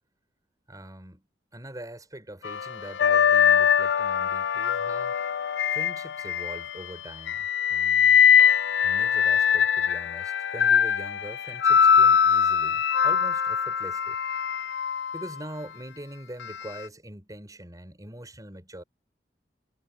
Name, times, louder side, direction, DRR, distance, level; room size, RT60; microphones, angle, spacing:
voice 1, 0.7-1.3 1.5-5.1 5.7-8.2 8.8-14.2 15.1-18.8, right 1 dB, 20° right, 7.5 m, -42 dB
sound 1, 2.4-6.8 7.3-15.3 16.4-16.6, left 8 dB, 85° left, 0.5 m, -22 dB
head